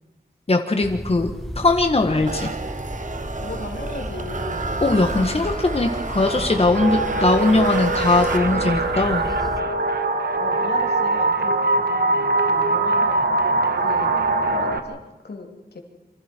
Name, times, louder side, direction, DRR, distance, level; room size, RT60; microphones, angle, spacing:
voice 1, 0.5-2.5 4.8-9.2, left 2 dB, 35° left, 4 dB, 1.6 m, -20 dB
sound 1, 0.8-9.6, equal, ahead, 1.0 m, -34 dB
sound 2, 2.3-8.9, right 3 dB, 50° right, 1.6 m, -31 dB
voice 2, 3.4-4.8 10.4-13.3 13.8-14.1 14.4-15.0 15.2-15.8, left 3 dB, 85° left, 2 dB, 3.2 m, -36 dB
sound 3, 6.7-14.8, right 3 dB, 80° right, 1.8 m, -22 dB
27.5 x 25.5 x 4.6 m, 1.1 s
wide cardioid pair, 100°, 16 cm